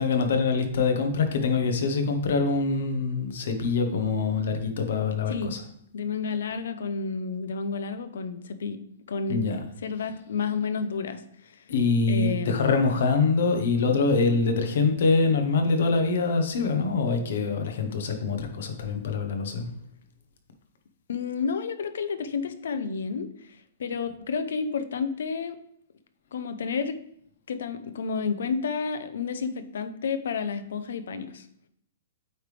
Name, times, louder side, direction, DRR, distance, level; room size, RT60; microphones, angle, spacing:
voice 1, 0.0-5.6 9.3-9.6 11.7-19.7, left 4 dB, 55° left, 6 dB, 0.9 m, -24 dB
voice 2, 5.9-8.8 9.1-9.6 9.8-11.6 12.1-12.8 21.1-25.6 26.3-27.0 27.5-31.5, left 5 dB, 70° left, 11 dB, 0.6 m, -31 dB
8.6 x 3.2 x 3.4 m, 0.70 s
hypercardioid pair, 180°, 0 cm